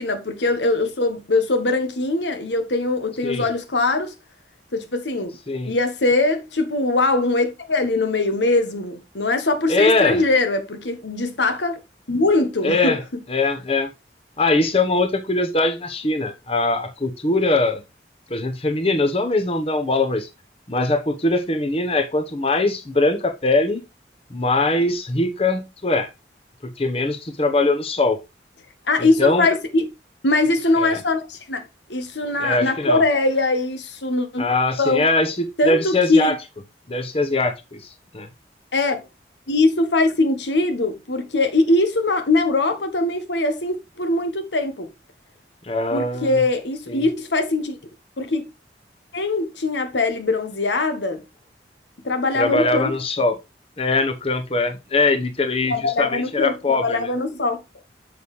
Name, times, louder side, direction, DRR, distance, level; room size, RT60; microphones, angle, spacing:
voice 1, 0.0-4.1 4.7-5.3 5.7-11.8 12.1-13.0 28.9-29.9 30.2-34.5 34.8-35.0 35.6-36.3 38.7-39.0 39.5-44.9 45.9-47.8 48.2-48.4 49.1-51.2 52.0-52.9 55.6-57.6, left 2 dB, 90° left, 1.3 m, -21 dB
voice 2, 9.7-10.2 12.6-13.0 13.3-13.9 14.4-17.8 18.3-20.3 20.7-23.8 24.3-26.1 26.6-28.2 29.0-29.5 30.8-31.0 32.4-33.0 34.4-36.4 36.9-37.8 38.1-38.3 45.6-46.4 46.9-47.0 52.3-53.4 53.8-57.1, left 2 dB, 35° left, 1.0 m, -21 dB
7.1 x 6.4 x 3.2 m
head